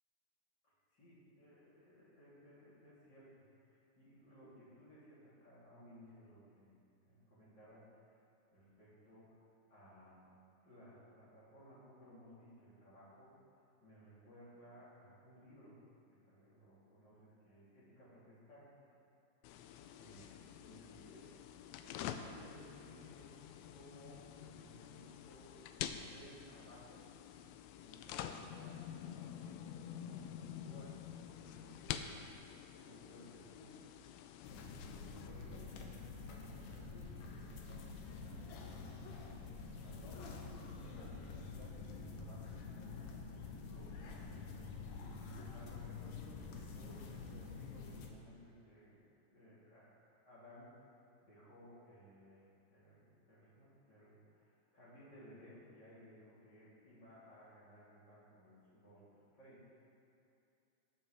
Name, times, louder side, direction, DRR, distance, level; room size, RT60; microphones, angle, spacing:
voice 1, 0.6-6.8 7.0-7.9 8.5-9.4 9.7-10.2 10.6-13.4 13.8-15.8 16.1-18.7 19.9-21.3 21.8-25.5 25.8-27.0 27.8-29.6 30.0-32.4 32.7-33.8 34.5-39.3 39.8-43.9 44.2-44.9 45.4-50.0 50.2-50.8 51.2-52.4 52.7-59.6, equal, 30° left, -10 dB, 3.4 m, -60 dB
sound 1, 19.4-35.3, left 9 dB, 90° left, 2.5 m, -48 dB
sound 2, 34.4-48.1, left 4 dB, 70° left, 1.6 m, -48 dB
20.0 x 7.1 x 3.5 m, 2.6 s
omnidirectional pair, 4.3 m